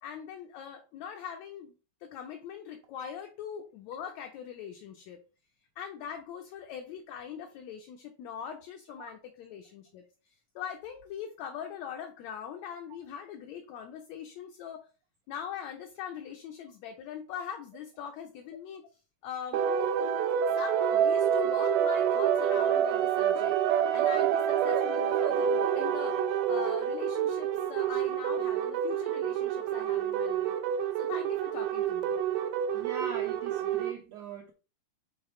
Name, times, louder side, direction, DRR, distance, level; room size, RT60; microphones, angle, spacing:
voice 1, 0.0-1.7 2.0-5.2 5.8-14.9 15.3-18.8 19.2-19.6 20.5-26.2 26.5-30.5 31.0-32.1, left 8 dB, 75° left, 4 dB, 1.7 m, -42 dB
sound 1, 19.5-33.9, right 9 dB, 85° right, 2.3 m, -28 dB
voice 2, 32.7-34.5, right 6 dB, 70° right, 2 dB, 1.6 m, -41 dB
6.8 x 3.4 x 4.3 m, 0.34 s
omnidirectional pair, 3.8 m